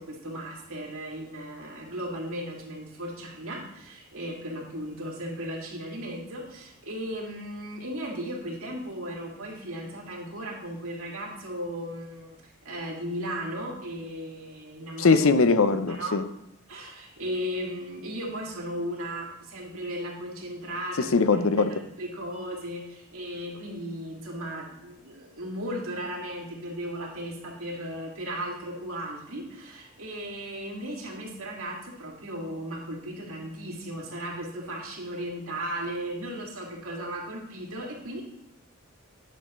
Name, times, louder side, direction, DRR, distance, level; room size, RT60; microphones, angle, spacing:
voice 1, 0.0-15.2 15.9-16.2 16.7-21.7 22.0-38.2, equal, 80° right, 2.5 m, -36 dB
voice 2, 15.0-16.3 21.0-21.8, left 4 dB, 75° left, 0.6 m, -21 dB
11.0 x 6.9 x 3.1 m
head